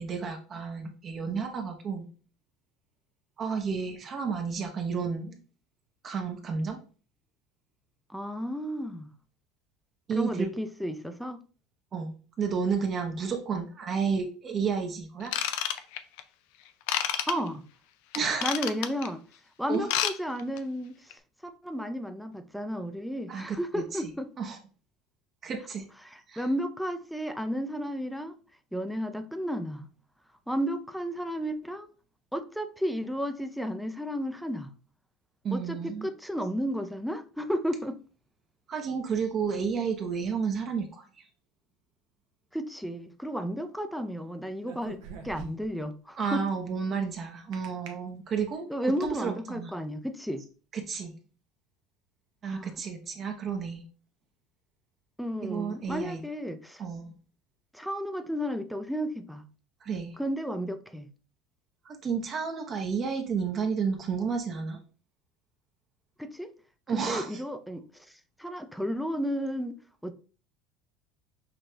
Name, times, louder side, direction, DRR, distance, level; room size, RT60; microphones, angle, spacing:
voice 1, 0.0-2.1 3.4-5.4 6.0-6.8 10.1-10.5 11.9-15.3 18.1-18.5 19.7-19.9 23.3-24.1 24.4-24.6 25.4-25.8 26.3-26.5 35.4-36.1 38.7-41.0 46.2-49.7 50.7-51.1 52.4-53.8 55.4-56.2 56.8-57.1 59.8-60.2 61.8-64.8 66.9-67.4, right 5 dB, 40° right, 0.9 m, -31 dB
voice 2, 8.1-9.1 10.1-11.4 17.3-17.6 18.4-19.2 19.6-21.0 21.4-24.3 26.0-28.3 28.7-29.9 30.5-31.9 32.3-34.7 35.5-38.0 42.5-45.0 45.2-46.4 48.7-50.4 52.5-52.7 55.2-56.8 57.7-59.4 60.2-61.1 66.2-66.5 66.9-67.8 68.4-70.1, equal, ahead, 0.5 m, -33 dB
Ratchet pawl / Tools, 15.2-16.2 16.9-17.3 18.1-19.1 19.7-20.1 20.4-20.6 21.1-21.2, left 11 dB, 75° left, 0.5 m, -29 dB
sound 1, 44.6-45.8 47.5-47.9 48.5-49.2, right 6 dB, 70° right, 0.9 m, -44 dB
6.1 x 2.4 x 3.3 m
supercardioid pair, 105°, 0 cm